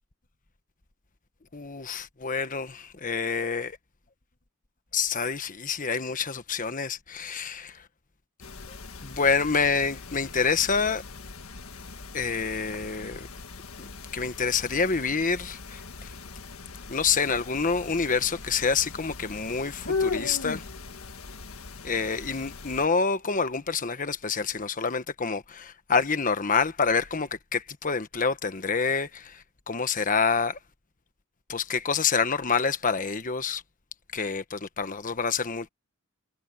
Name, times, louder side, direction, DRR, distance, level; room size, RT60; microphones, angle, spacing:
voice 1, 1.5-3.7 4.9-7.8 8.7-11.0 12.1-13.3 13.8-13.9 14.1-16.1 16.9-20.6 21.8-30.6 31.5-33.6 34.1-35.7, left 5 dB, 40° left, 1.3 m, -27 dB
sound 1, 8.4-22.9, left 4 dB, 90° left, 1.6 m, -38 dB
head